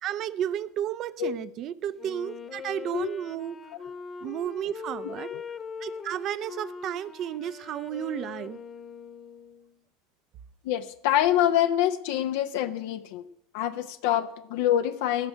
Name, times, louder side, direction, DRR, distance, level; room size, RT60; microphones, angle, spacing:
voice 1, 0.0-3.6 4.2-5.3 5.8-8.6, right 10 dB, 45° right, 16 dB, 0.7 m, -32 dB
Wind instrument woodwind instrument, 2.0-9.7, left 5 dB, 30° left, 1.2 m, -41 dB
voice 2, 5.0-5.4 10.6-13.2 13.5-15.3, left 11 dB, 60° left, 8 dB, 0.7 m, -26 dB
15.5 x 6.2 x 9.0 m, 0.75 s
figure-of-eight pair, 80°, 0 cm